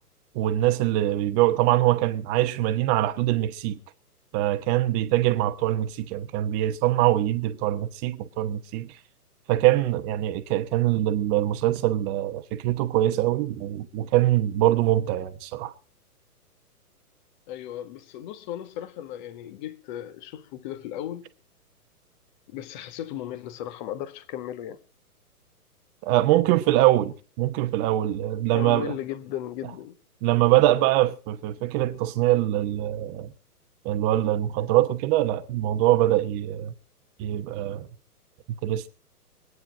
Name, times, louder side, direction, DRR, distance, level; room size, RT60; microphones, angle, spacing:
voice 1, 0.3-3.8 4.3-8.9 9.5-15.7 26.0-28.9 30.2-33.3 33.8-36.7 37.2-37.9 38.6-38.9, right 14 dB, 20° right, 1.0 m, -23 dB
voice 2, 17.5-21.3 22.5-24.8 28.5-29.9, left 11 dB, 30° left, 1.3 m, -36 dB
23.5 x 9.5 x 5.0 m
figure-of-eight pair, 125°, 47 cm